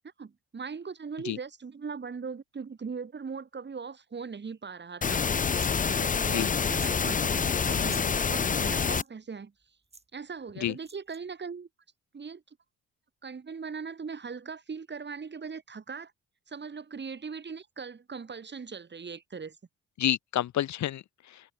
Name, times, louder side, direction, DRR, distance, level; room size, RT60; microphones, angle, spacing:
voice 1, 0.2-9.5 10.1-11.7 12.1-12.6 13.2-16.1 16.5-19.6, right 5 dB, 35° right, 5.3 m, -40 dB
sound 1, 5.0-9.0, left 6 dB, 25° left, 0.7 m, -27 dB
sound 2, 5.5-5.8 6.7-7.0 7.3-7.4 7.7-8.1 8.8-9.1 9.9-10.0 10.8-11.2, right 3 dB, 20° right, 2.4 m, -48 dB
voice 2, 20.0-21.5, left 12 dB, 70° left, 1.5 m, -30 dB
cardioid pair, 90°, 30 cm